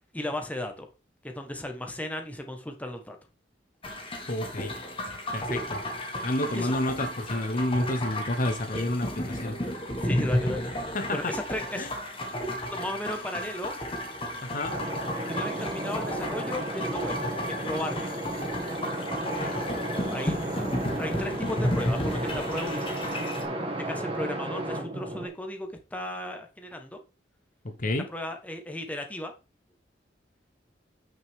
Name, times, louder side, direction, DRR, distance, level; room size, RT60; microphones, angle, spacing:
voice 1, 0.1-0.9 1.2-3.2 6.5-6.7 10.0-10.7 11.1-11.9 12.7-13.7 15.3-18.2 20.1-20.4 21.0-22.9 23.8-27.0 28.1-29.3, left 1 dB, 10° left, 1.2 m, -35 dB
sound 1, 3.8-23.4, left 1 dB, 30° left, 1.8 m, -33 dB
voice 2, 4.3-4.8 5.3-5.9 6.2-9.5 10.9-11.3 11.8-11.9 14.4-14.8 19.4-19.6 27.6-28.1, left 1 dB, 50° left, 0.9 m, -30 dB
sound 2, 14.7-25.3, right 1 dB, 35° right, 2.1 m, -33 dB
9.2 x 5.8 x 3.6 m
head